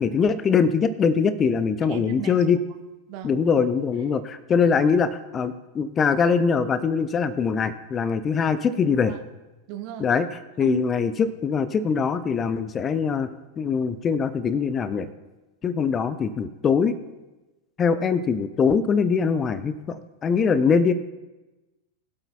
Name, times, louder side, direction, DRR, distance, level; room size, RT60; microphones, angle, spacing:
voice 1, 0.0-2.6 3.2-9.1 10.0-10.3 10.6-13.3 13.6-15.1 15.6-17.0 17.8-20.9, left 6 dB, 25° left, 13 dB, 0.5 m, -22 dB
voice 2, 1.9-2.4 3.1-3.4 9.1-9.2 9.7-10.0 10.6-10.8, right 14 dB, 45° right, 7 dB, 1.0 m, -35 dB
21.5 x 8.1 x 2.3 m, 1.1 s
figure-of-eight pair, 90°, 0 cm